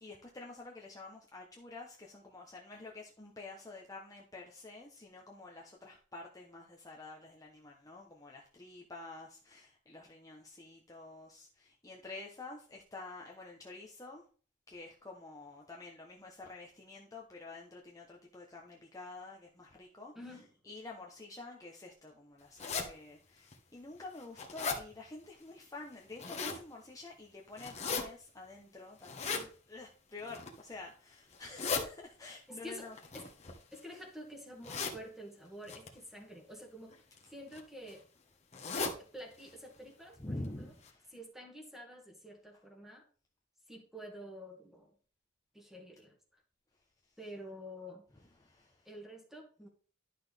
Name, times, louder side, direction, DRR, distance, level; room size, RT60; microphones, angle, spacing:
voice 1, 0.0-14.3 14.7-20.1 20.6-33.0 40.2-41.2 46.7-47.2 48.1-48.9, left 2 dB, 20° left, -1 dB, 1.0 m, -49 dB
voice 2, 20.2-20.5 32.5-32.9 33.1-33.3 33.7-37.0 37.3-38.0 39.0-40.7 41.1-43.1 43.7-44.9 45.5-46.2 47.2-48.0 48.9-49.7, equal, ahead, 1 dB, 1.9 m, -49 dB
sound 1, 22.6-22.9 23.5-23.6 24.0-24.8 25.9-26.6 27.6-28.0 29.0-29.4 30.2-30.6 31.3-31.8 32.9-33.9 34.6-35.0 35.7-35.9 36.9-37.2 37.5-37.6 37.9-38.0 38.5-39.0 39.4-39.5 39.8-39.9 40.4-40.5 40.8-40.9, left 5 dB, 35° left, 1.3 m, -37 dB
11.0 x 6.1 x 3.5 m, 0.41 s
head